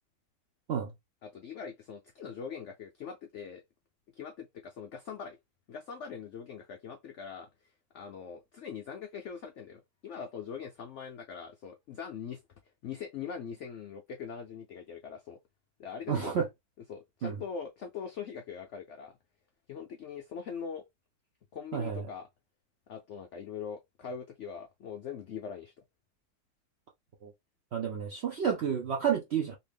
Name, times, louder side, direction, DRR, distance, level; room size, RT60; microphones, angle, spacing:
voice 1, 1.2-3.6 4.1-5.4 5.7-12.4 12.8-15.4 15.8-16.4 16.9-19.2 19.7-20.8 21.5-22.3 22.9-25.7, left 6 dB, 80° left, 0.6 m, -42 dB
voice 2, 16.1-16.5 17.2-17.4 21.7-22.1 27.2-27.3 27.7-29.6, right 7 dB, 70° right, 0.6 m, -30 dB
2.8 x 2.7 x 3.3 m
omnidirectional pair, 1.8 m